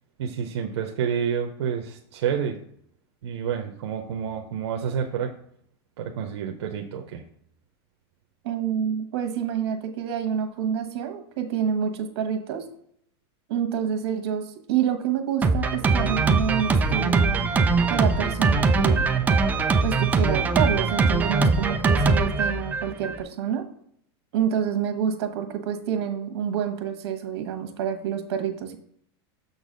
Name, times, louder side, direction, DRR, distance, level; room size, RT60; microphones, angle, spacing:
voice 1, 0.2-2.6 3.2-5.3 6.0-7.2, right 7 dB, 90° right, 3 dB, 0.8 m, -29 dB
voice 2, 8.4-12.6 13.5-17.4 17.9-19.0 19.8-23.6 24.3-28.8, right 8 dB, 70° right, 6 dB, 1.3 m, -28 dB
Drum kit, 15.4-23.2, right 4 dB, 10° right, 0.4 m, -22 dB
7.1 x 4.0 x 5.1 m, 0.67 s
supercardioid pair, 145°, 14 cm